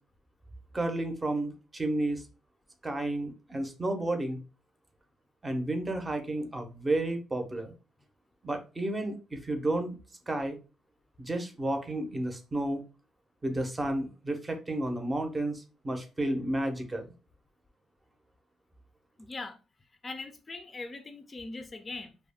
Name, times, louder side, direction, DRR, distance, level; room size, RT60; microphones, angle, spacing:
voice 1, 0.7-2.2 2.8-4.4 5.4-7.7 8.4-10.0 10.3-10.6 11.2-12.8 13.4-17.1, right 1 dB, 20° right, 0.7 m, -31 dB
voice 2, 19.2-19.6 20.0-22.2, left 3 dB, 30° left, 0.4 m, -41 dB
2.3 x 2.1 x 3.4 m
cardioid pair, 90°, 0 cm